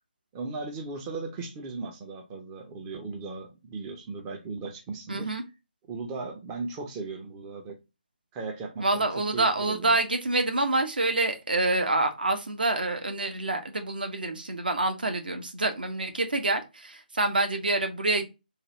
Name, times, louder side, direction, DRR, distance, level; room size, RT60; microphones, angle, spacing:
voice 1, 0.3-5.3 5.9-7.8 8.3-10.0, right 3 dB, 15° right, 0.4 m, -37 dB
voice 2, 5.1-5.4 8.8-18.2, right 2 dB, 65° right, 0.8 m, -27 dB
3.2 x 2.3 x 3.6 m
figure-of-eight pair, 150°, 5 cm